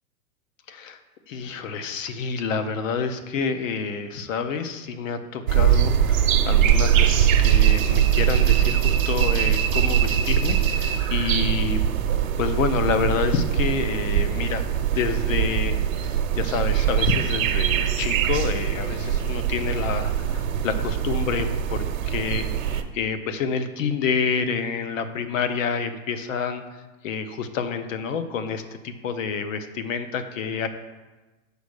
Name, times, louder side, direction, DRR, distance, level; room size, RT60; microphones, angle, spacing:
voice 1, 0.7-1.0 1.3-11.8 12.4-14.6 14.9-30.7, left 5 dB, 60° left, 10 dB, 0.9 m, -28 dB
sound 1, 5.5-22.8, right 9 dB, 65° right, 0.9 m, -22 dB
5.1 x 5.1 x 6.5 m, 1.2 s
hypercardioid pair, 150°, 43 cm